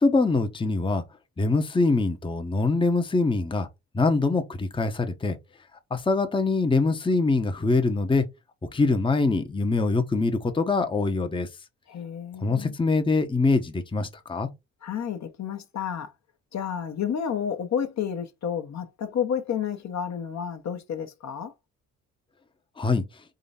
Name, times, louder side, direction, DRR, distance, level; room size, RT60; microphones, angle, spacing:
voice 1, 0.0-1.0 1.4-3.7 3.9-5.4 5.9-8.2 8.7-11.5 12.4-14.5 22.8-23.0, left 3 dB, 15° left, 0.9 m, -23 dB
voice 2, 11.9-12.7 14.8-16.1 16.5-21.5, left 8 dB, 45° left, 1.0 m, -30 dB
3.9 x 3.1 x 4.1 m
hypercardioid pair, 55°, 37 cm